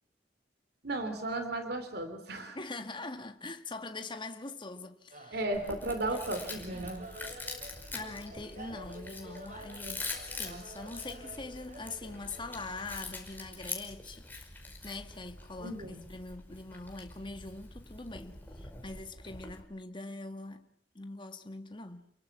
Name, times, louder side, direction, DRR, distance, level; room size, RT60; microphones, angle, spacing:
voice 1, 0.8-2.6 5.3-7.0 15.6-16.0, right 2 dB, 65° right, 3.2 m, -35 dB
voice 2, 2.5-5.4 6.7-6.9 7.9-14.3 14.8-20.7 20.9-22.1, left 3 dB, 30° left, 1.9 m, -43 dB
sound 1, 5.1-13.7, right 2 dB, 45° right, 3.6 m, -50 dB
Chewing mastication, 5.5-19.6, left 3 dB, 10° left, 5.2 m, -44 dB
29.5 x 23.0 x 6.1 m
head